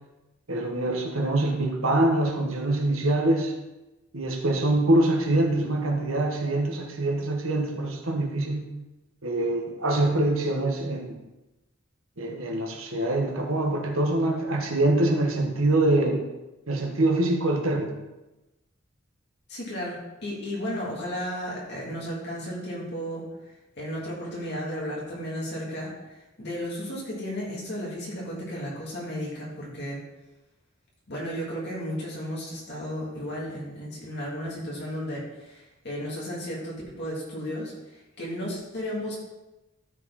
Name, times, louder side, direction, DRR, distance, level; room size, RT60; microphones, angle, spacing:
voice 1, 0.5-3.5 4.1-8.7 9.2-11.2 12.2-16.3 16.7-17.9, right 1 dB, 90° right, 2 dB, 1.5 m, -24 dB
voice 2, 19.5-23.2 23.8-30.0 31.1-39.2, equal, 55° left, -5 dB, 3.2 m, -34 dB
12.5 x 5.0 x 4.3 m, 1.0 s
head